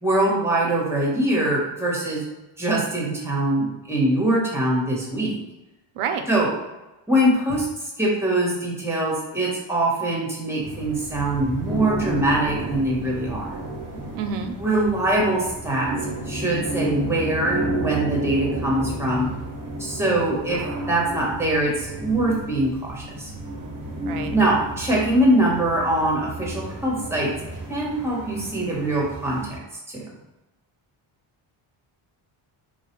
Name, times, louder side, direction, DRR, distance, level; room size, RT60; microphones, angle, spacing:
voice 1, 0.0-2.3 2.6-5.3 6.3-6.5 7.1-13.6 14.6-15.9 16.3-19.3 19.8-23.3 24.3-27.3 27.7-29.6 29.9-30.0, right 1 dB, 5° right, -4 dB, 1.1 m, -23 dB
voice 2, 6.0-6.3 14.1-14.5 24.1-24.4, right 6 dB, 90° right, 6 dB, 0.6 m, -28 dB
sound 1, 10.6-29.6, right 1 dB, 40° right, 0.8 m, -32 dB
3.3 x 2.3 x 4.4 m, 1.0 s
wide cardioid pair, 130°, 49 cm